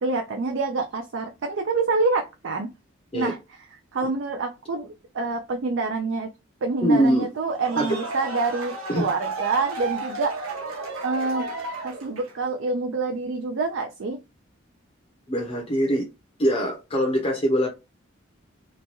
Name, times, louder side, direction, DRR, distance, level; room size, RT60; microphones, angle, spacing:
voice 1, 0.0-2.7 3.1-3.4 3.9-4.9 5.1-6.3 6.6-10.5 11.0-11.5 11.8-14.2, right 3 dB, 65° right, 0.4 m, -26 dB
voice 2, 6.8-7.3 7.8-7.9 8.9-9.1 15.3-16.0 16.4-17.7, equal, 30° left, 0.6 m, -22 dB
sound 1, 7.4-12.5, right 3 dB, 85° right, 0.8 m, -33 dB
3.0 x 2.2 x 2.7 m
head